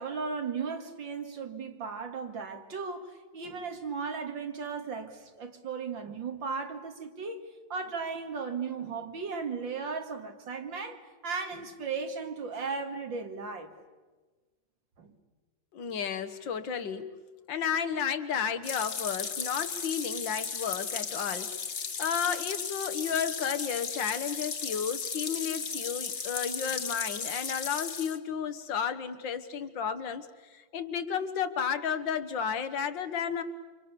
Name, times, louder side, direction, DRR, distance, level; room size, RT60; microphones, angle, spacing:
voice 1, 0.0-13.7 15.0-15.1, right 5 dB, 85° right, 2.8 m, -36 dB
voice 2, 15.7-17.1 17.5-21.6 22.0-33.4, left 7 dB, 80° left, 2.0 m, -32 dB
sound 1, 18.6-28.2, left 6 dB, 40° left, 1.4 m, -35 dB
29.0 x 26.5 x 6.9 m
omnidirectional pair, 2.0 m